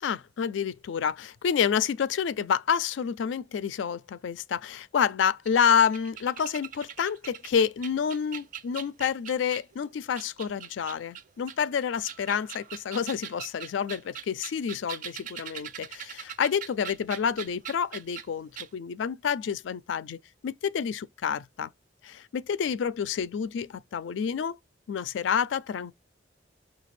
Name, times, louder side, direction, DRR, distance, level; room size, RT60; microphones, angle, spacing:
voice 1, 0.0-21.7 22.0-24.6 24.9-25.9, left 7 dB, 85° left, 0.4 m, -28 dB
sound 1, 5.5-9.7 10.2-11.6 12.0-18.3 18.6-18.7, right 9 dB, 45° right, 0.4 m, -41 dB
5.7 x 2.3 x 3.1 m
head